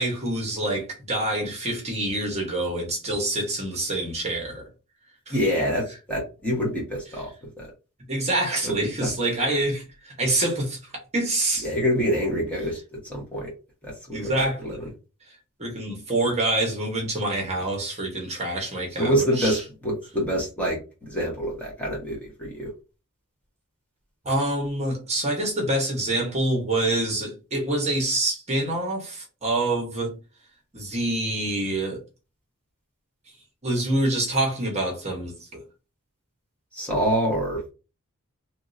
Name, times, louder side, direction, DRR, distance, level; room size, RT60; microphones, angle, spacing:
voice 1, 0.0-4.6 5.3-5.4 8.1-10.8 11.1-11.7 14.1-14.9 15.6-19.6 24.2-30.1 30.7-32.0 33.6-35.6, right 1 dB, 30° right, 1.0 m, -26 dB
voice 2, 5.3-7.3 7.6-7.7 8.6-8.7 11.6-12.8 13.1-13.5 13.8-14.9 19.0-20.8 21.1-22.7 36.7-37.7, equal, 5° left, 1.1 m, -26 dB
3.0 x 2.7 x 2.6 m
head